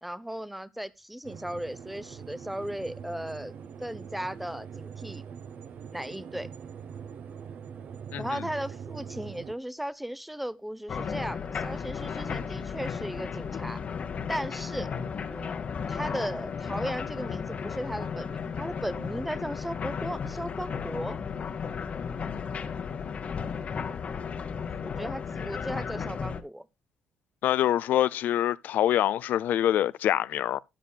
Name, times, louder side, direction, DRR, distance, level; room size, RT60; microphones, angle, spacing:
voice 1, 0.0-5.2 5.9-6.5 8.2-13.8 14.3-14.9 15.3-15.6 15.9-21.2 24.8-26.7, equal, 5° right, 0.6 m, -36 dB
sound 1, 1.2-9.5, right 7 dB, 55° right, 0.8 m, -43 dB
voice 2, 8.1-8.5 27.4-30.6, left 12 dB, 70° left, 0.4 m, -25 dB
sound 2, 10.9-26.4, left 6 dB, 45° left, 1.0 m, -34 dB
12.5 x 10.0 x 2.2 m
cardioid pair, 100°, 3 cm